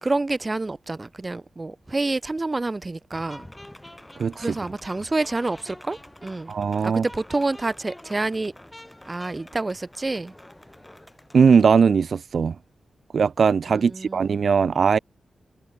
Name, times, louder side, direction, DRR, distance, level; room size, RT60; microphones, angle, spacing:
voice 1, 0.0-3.5 4.3-6.5 6.8-8.5 9.1-10.3 13.7-14.3, right 2 dB, 30° right, 0.7 m, -28 dB
sound 1, 3.1-11.7, left 1 dB, 10° left, 5.7 m, -46 dB
voice 2, 6.5-7.0 11.3-12.6 13.1-15.0, right 6 dB, 65° right, 0.4 m, -19 dB
cardioid pair, 70°, 0 cm